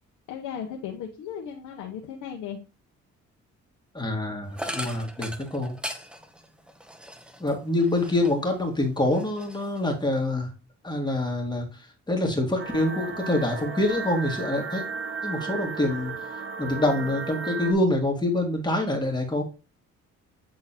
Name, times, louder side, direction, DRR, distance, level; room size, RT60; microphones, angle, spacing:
voice 1, 0.3-2.6, left 8 dB, 85° left, 1 dB, 0.9 m, -36 dB
voice 2, 3.9-5.7 7.4-10.5 10.8-14.8 15.2-16.1 16.6-19.4, left 1 dB, 15° left, 1 dB, 1.9 m, -26 dB
sound 1, 4.6-8.5 8.9-10.1, equal, 5° right, 0.8 m, -39 dB
sound 2, 12.6-17.7, right 4 dB, 40° right, 1.0 m, -34 dB
8.7 x 3.8 x 2.9 m, 0.33 s
cardioid pair, 90°, 30 cm